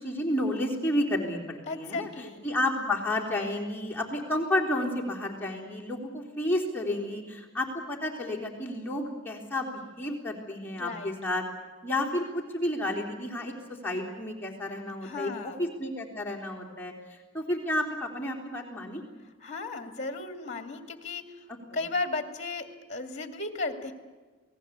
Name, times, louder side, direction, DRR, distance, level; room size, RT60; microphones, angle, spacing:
voice 1, 0.0-2.1 2.4-11.4 11.8-19.0, left 1 dB, 10° left, -2 dB, 3.8 m, -31 dB
voice 2, 1.7-2.4 10.8-11.1 15.0-15.6 19.4-21.4 21.7-23.9, left 3 dB, 35° left, 8 dB, 2.4 m, -35 dB
28.5 x 19.0 x 8.3 m, 1.3 s
head